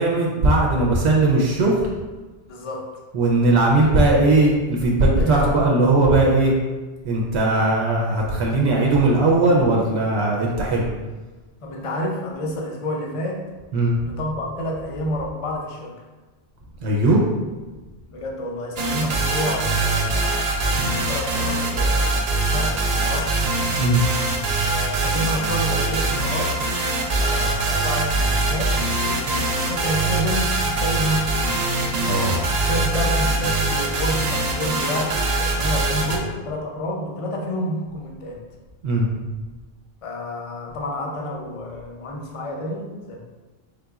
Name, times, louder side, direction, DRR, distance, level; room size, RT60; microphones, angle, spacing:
voice 1, 0.0-1.9 3.1-6.5 7.0-10.9 13.7-14.0 16.8-17.2 23.8-24.0 32.0-32.4 38.8-39.1, right 2 dB, 80° right, -1 dB, 0.9 m, -18 dB
voice 2, 2.5-2.9 5.2-5.7 6.2-6.5 11.6-13.5 14.0-16.1 18.1-23.4 24.6-26.6 27.0-31.7 32.7-38.4 40.0-43.2, left 1 dB, 40° left, 0 dB, 0.5 m, -29 dB
sound 1, 18.8-36.2, right 2 dB, 55° right, 0.5 m, -23 dB
3.9 x 3.6 x 2.3 m, 1.3 s
omnidirectional pair, 1.1 m